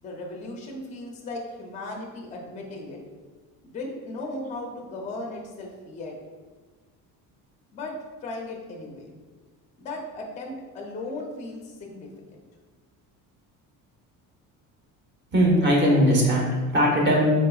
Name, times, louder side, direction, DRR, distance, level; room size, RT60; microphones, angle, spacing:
voice 1, 0.0-3.0 3.6-6.2 7.7-7.9 8.2-9.1 9.8-12.1, left 2 dB, 20° left, 0 dB, 0.5 m, -36 dB
voice 2, 15.3-17.3, equal, 30° right, -2 dB, 1.0 m, -20 dB
4.7 x 3.8 x 2.3 m, 1.4 s
cardioid pair, 160°, 35 cm